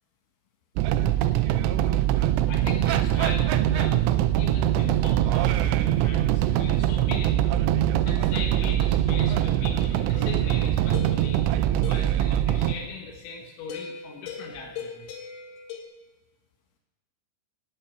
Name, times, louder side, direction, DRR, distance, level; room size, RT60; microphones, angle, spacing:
sound 1, 0.8-12.7, right 12 dB, 80° right, 2.6 m, -23 dB
voice 1, 2.5-7.6 8.1-11.4 11.9-15.1, left 5 dB, 85° left, 2 dB, 3.6 m, -39 dB
sound 2, 10.1-12.2 13.7-15.8, left 6 dB, 60° left, 3.6 m, -40 dB
15.5 x 5.6 x 9.1 m, 1.2 s
omnidirectional pair, 5.4 m